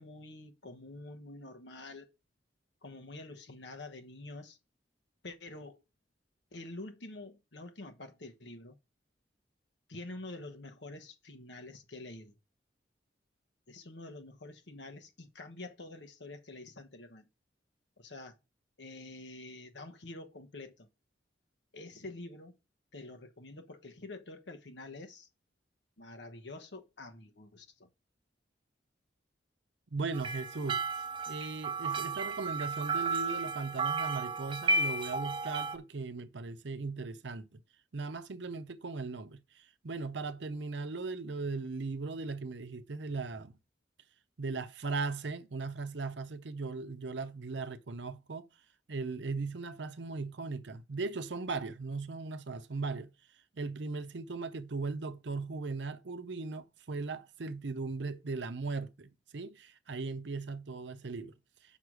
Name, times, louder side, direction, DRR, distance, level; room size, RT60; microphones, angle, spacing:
voice 1, 0.0-2.1 2.8-4.6 5.2-5.8 6.5-8.8 9.9-12.4 13.7-17.3 18.0-18.4 18.8-20.9 21.7-22.6 22.9-25.3 26.0-27.9, left 2 dB, 70° left, 1.1 m, -47 dB
voice 2, 29.9-30.8 31.3-37.6 37.9-43.6 44.4-48.5 48.9-53.1 53.5-61.3, right 4 dB, 70° right, 0.7 m, -38 dB
sound 1, 30.1-35.8, right 3 dB, 25° right, 0.5 m, -33 dB
6.2 x 5.9 x 4.8 m
head